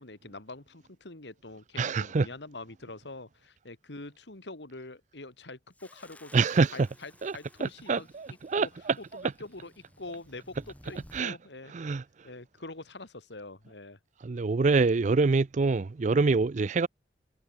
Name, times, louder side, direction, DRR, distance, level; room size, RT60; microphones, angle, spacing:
voice 1, 0.0-6.4 6.7-8.7 9.0-11.7 12.2-14.0, left 2 dB, 85° left, 2.6 m, -45 dB
voice 2, 1.8-2.3 6.3-6.9 7.2-9.2 11.1-11.4 11.7-12.0 14.2-16.9, right 4 dB, 45° right, 0.5 m, -26 dB
sound 1, 5.7-11.3, left 1 dB, 10° left, 3.3 m, -56 dB
head